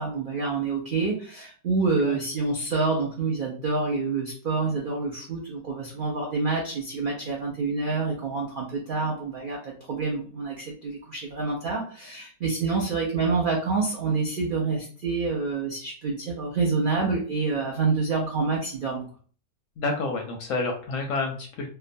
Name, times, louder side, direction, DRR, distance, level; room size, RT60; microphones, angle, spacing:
voice 1, 0.0-19.0, right 4 dB, 75° right, -2 dB, 0.4 m, -27 dB
voice 2, 19.8-21.7, left 3 dB, 70° left, 2 dB, 0.8 m, -29 dB
2.8 x 2.2 x 2.6 m, 0.43 s
omnidirectional pair, 1.7 m